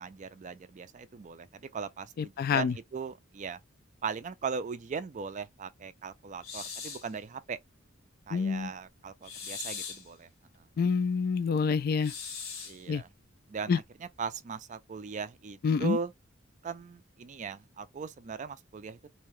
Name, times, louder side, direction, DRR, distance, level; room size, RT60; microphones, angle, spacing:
voice 1, 0.0-3.6 4.0-7.6 8.3-10.3 12.7-13.1 13.5-13.8 14.2-16.1 16.6-19.1, right 5 dB, 35° right, 0.4 m, -38 dB
voice 2, 2.2-2.7 8.3-8.7 10.8-12.1 12.9-13.0 13.7-13.8 15.6-16.0, left 5 dB, 45° left, 0.3 m, -27 dB
sound 1, 6.4-7.1 9.2-10.1 12.0-12.8, left 6 dB, 85° left, 1.1 m, -40 dB
2.8 x 2.2 x 3.1 m
head